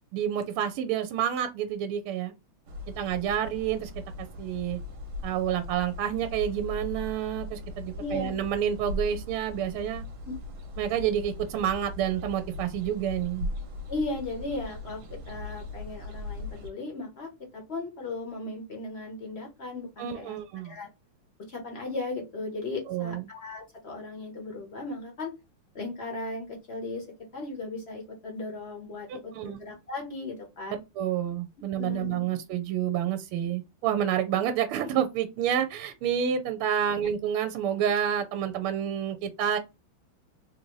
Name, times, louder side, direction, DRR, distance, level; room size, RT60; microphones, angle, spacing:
voice 1, 0.1-2.3 3.0-3.9 4.2-4.8 5.2-10.0 10.8-13.5 20.0-20.7 22.9-23.2 29.1-29.6 31.0-39.6, right 9 dB, 80° right, 1.4 m, -29 dB
sound 1, 2.7-16.7, left 2 dB, 55° right, 1.4 m, -39 dB
voice 2, 8.0-8.3 10.2-10.3 13.9-20.4 20.6-20.9 21.5-25.3 25.7-27.1 27.3-30.8 31.8-32.2, left 3 dB, 45° left, 0.9 m, -36 dB
3.8 x 2.6 x 3.0 m
omnidirectional pair, 2.4 m